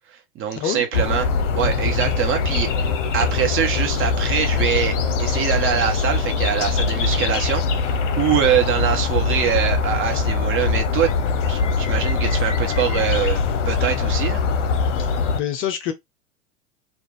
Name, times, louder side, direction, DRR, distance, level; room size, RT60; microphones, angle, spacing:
voice 1, 0.3-2.9 3.1-11.1 11.5-14.4, right 9 dB, 30° right, 1.2 m, -23 dB
sound 1, 0.9-15.4, left 4 dB, 65° left, 0.8 m, -22 dB
voice 2, 15.0-15.9, left 9 dB, 30° left, 0.6 m, -27 dB
3.6 x 2.5 x 3.4 m
hypercardioid pair, 95°, 39 cm